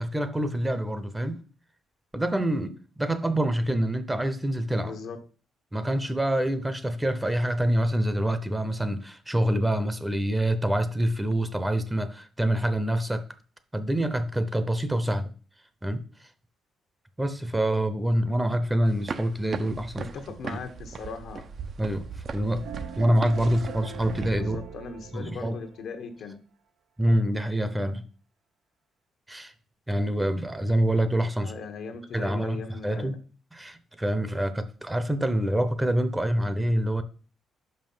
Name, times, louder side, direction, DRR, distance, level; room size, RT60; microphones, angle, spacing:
voice 1, 0.0-1.4 2.1-4.9 5.7-13.2 13.7-15.3 15.8-16.0 17.2-20.0 20.5-20.6 21.8-22.6 23.0-24.6 25.1-25.6 27.0-28.0 29.3-29.5 29.9-31.5 32.1-33.2 33.5-37.0, right 1 dB, 10° right, 0.8 m, -26 dB
voice 2, 4.8-5.2 20.0-21.4 24.3-26.4 31.4-33.2, left 5 dB, 70° left, 1.1 m, -39 dB
sound 1, 18.9-24.3, right 5 dB, 50° right, 0.7 m, -38 dB
sound 2, 22.6-25.9, right 6 dB, 85° right, 0.9 m, -41 dB
5.5 x 5.1 x 5.5 m
cardioid pair, 90°, 0 cm